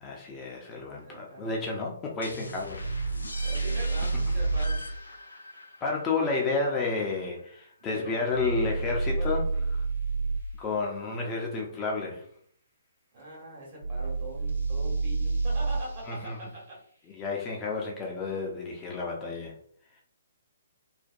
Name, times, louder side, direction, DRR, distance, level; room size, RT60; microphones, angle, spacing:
voice 1, 0.0-2.8 5.8-9.4 9.7-9.8 10.6-12.2 16.1-16.4 17.1-19.5, left 3 dB, 20° left, -2 dB, 0.4 m, -31 dB
voice 2, 0.9-1.5 3.4-4.8 7.8-8.4 9.1-9.7 13.1-16.8, right 1 dB, 40° right, -4 dB, 1.3 m, -43 dB
sound 1, 2.2-7.7, left 1 dB, 75° left, 0.5 m, -42 dB
sound 2, 2.8-4.8 8.3-10.4 13.8-15.9, right 3 dB, 75° right, 1.3 m, -29 dB
2.5 x 2.1 x 2.5 m, 0.62 s
figure-of-eight pair, 125°, 0 cm